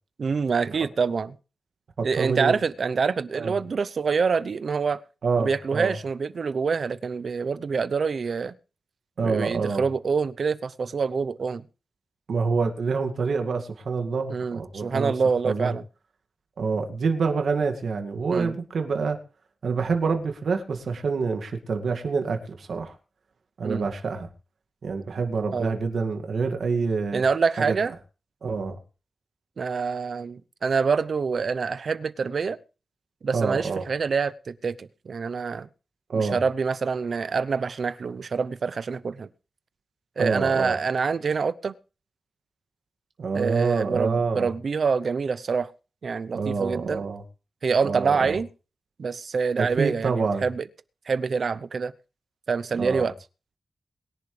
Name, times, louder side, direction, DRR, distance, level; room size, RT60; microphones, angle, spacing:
voice 1, 0.2-1.4 2.0-5.0 5.4-8.5 9.2-11.6 14.3-15.8 18.3-18.5 23.6-23.8 25.5-25.8 27.1-27.9 29.6-32.6 33.2-35.7 36.1-39.3 40.2-41.7 43.3-45.7 46.0-47.1 47.6-48.5 49.0-50.6 51.1-51.9 52.5-53.1, right 5 dB, 60° right, 14 dB, 0.7 m, -26 dB
voice 2, 2.0-2.6 3.3-3.6 5.2-6.0 9.2-9.8 12.3-15.1 15.4-15.8 16.6-19.2 19.6-23.0 23.6-24.3 24.8-27.2 27.6-27.8 28.4-28.8 33.3-33.9 36.1-36.4 40.2-40.8 43.2-44.5 46.3-47.2 47.8-48.4 49.6-50.4 52.8-53.1, right 4 dB, 75° right, 4 dB, 2.1 m, -27 dB
22.5 x 10.5 x 3.3 m, 0.35 s
wide cardioid pair, 125°, 0 cm